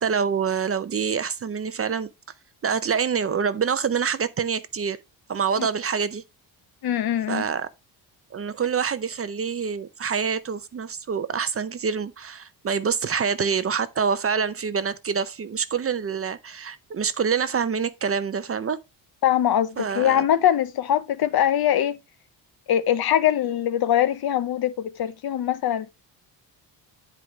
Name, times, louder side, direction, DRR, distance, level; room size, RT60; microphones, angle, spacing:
voice 1, 0.0-2.1 2.6-5.0 5.3-6.2 7.3-7.7 8.3-18.8 19.8-20.3, right 6 dB, 30° right, 0.5 m, -26 dB
voice 2, 6.8-7.4 19.2-22.0 22.7-25.9, left 11 dB, 55° left, 0.7 m, -22 dB
10.0 x 4.8 x 2.9 m
cardioid pair, 130°, 45 cm